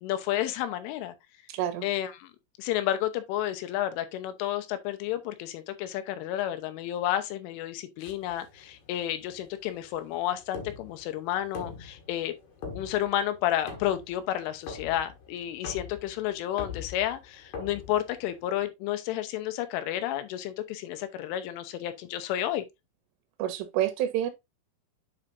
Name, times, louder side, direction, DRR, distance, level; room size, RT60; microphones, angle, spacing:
voice 1, 0.0-1.1 1.8-2.3 2.6-12.3 12.7-22.6, left 12 dB, 80° left, 3.4 m, -31 dB
voice 2, 1.5-1.9 23.4-24.3, right 11 dB, 80° right, 3.7 m, -28 dB
sound 1, 8.0-18.7, left 5 dB, 55° left, 2.7 m, -44 dB
9.8 x 4.8 x 2.6 m
omnidirectional pair, 5.7 m